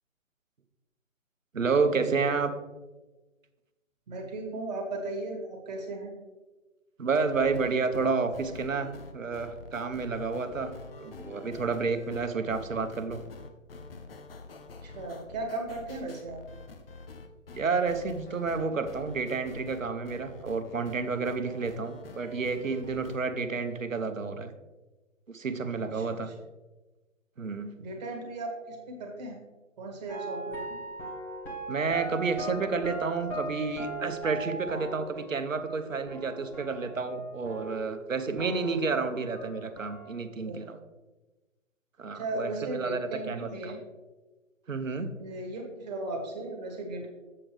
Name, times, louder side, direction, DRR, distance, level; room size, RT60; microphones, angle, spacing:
voice 1, 1.5-2.5 7.0-10.7 11.0-13.2 17.5-24.5 25.3-26.3 27.4-27.7 31.7-40.8 42.0-43.8 44.7-45.1, right 4 dB, 80° right, 8 dB, 0.9 m, -30 dB
voice 2, 4.1-6.1 14.8-16.4 25.9-26.3 27.8-29.4 29.8-30.6 40.5-40.6 42.1-43.8 45.2-47.1, right 2 dB, 35° right, 1 dB, 1.6 m, -36 dB
sound 1, 7.3-23.2, left 4 dB, 45° left, 0.9 m, -47 dB
sound 2, 30.1-38.1 38.4-40.1, right 2 dB, 5° left, 0.9 m, -39 dB
7.7 x 7.2 x 3.3 m, 1.2 s
figure-of-eight pair, 140°, 39 cm